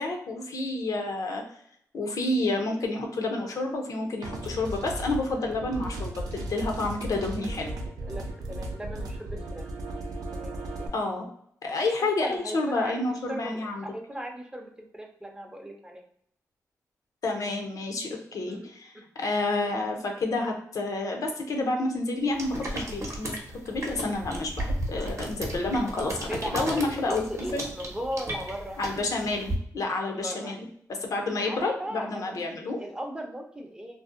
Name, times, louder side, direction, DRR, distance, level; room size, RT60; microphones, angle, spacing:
voice 1, 0.0-1.4 1.9-7.7 10.9-11.2 11.6-13.9 17.2-23.4 23.7-27.2 27.5-27.6 28.8-30.7 31.0-32.8, left 2 dB, 70° left, 3 dB, 0.5 m, -29 dB
sound 1, 4.2-10.9, right 1 dB, 80° right, 0.4 m, -36 dB
voice 2, 7.4-7.7 8.1-9.7 10.3-10.9 12.2-16.0 18.4-18.7 18.9-19.1 26.2-28.8 30.1-30.5 31.4-34.0, equal, 15° right, 2 dB, 0.5 m, -38 dB
sound 2, 22.3-29.5, right 1 dB, 50° right, 0.7 m, -35 dB
2.6 x 2.0 x 2.4 m, 0.69 s
cardioid pair, 60°, 6 cm